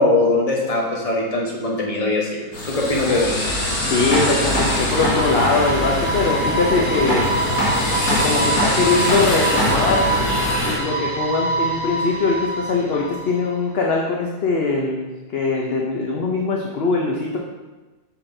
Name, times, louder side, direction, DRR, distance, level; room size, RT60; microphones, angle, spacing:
voice 1, 0.0-3.4, left 2 dB, 25° left, -2 dB, 1.1 m, -21 dB
sound 1, 2.5-10.8, left 1 dB, 85° left, 2.5 m, -22 dB
sound 2, 3.5-13.5, right 2 dB, 50° right, 1.8 m, -26 dB
voice 2, 3.9-7.3 8.1-10.1 10.8-15.1 15.3-17.4, left 3 dB, 55° left, -1 dB, 0.7 m, -21 dB
8.6 x 5.8 x 2.7 m, 1.2 s
omnidirectional pair, 1.6 m